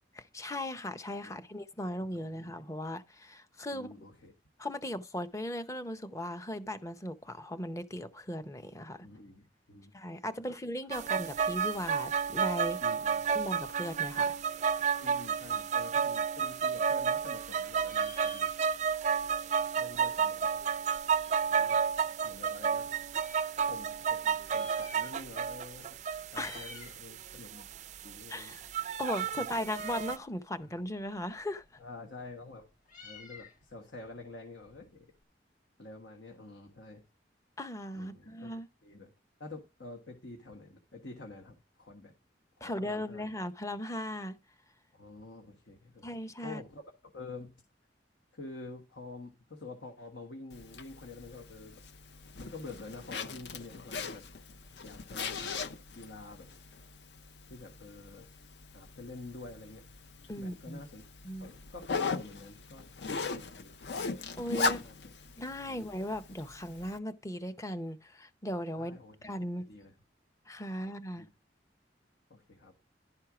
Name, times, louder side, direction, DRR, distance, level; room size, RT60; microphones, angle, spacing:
voice 1, 0.1-3.9 4.6-9.1 9.9-12.8 13.3-14.4 26.4-26.7 28.3-28.6 29.0-31.6 37.6-38.7 42.6-44.4 46.0-46.6 60.3-60.8 61.2-61.5 64.4-64.8 65.4-69.0 69.2-69.7 70.5-71.3, left 1 dB, 15° left, 0.6 m, -38 dB
voice 2, 3.7-4.3 9.0-9.9 12.8-13.5 15.0-18.5 19.8-20.7 21.5-21.8 22.2-23.0 23.6-26.0 26.3-27.7 28.0-28.6 29.3-29.4 30.6-30.7 31.8-32.7 33.0-35.1 35.8-37.0 37.9-39.1 39.4-42.1 42.6-43.3 44.9-46.1 46.4-47.5 48.3-51.8 52.4-54.2 54.8-56.6 57.5-58.3 58.7-59.8 60.4-61.0 61.4-63.8 64.8-65.1 65.6-65.9 68.7-69.3 69.7-69.9 71.1-71.3 72.3-72.7, left 3 dB, 85° left, 1.4 m, -48 dB
sound 1, 10.9-30.2, right 6 dB, 40° right, 0.4 m, -31 dB
Meow, 16.6-17.5 17.7-19.0 19.3-19.4 19.6-21.7 22.3-23.5 24.3-25.5 25.8-26.0 26.2-27.0 27.4-35.2, left 2 dB, 45° left, 1.5 m, -53 dB
Zipper (clothing), 50.5-67.0, left 4 dB, 70° left, 0.6 m, -39 dB
11.5 x 4.4 x 4.9 m
head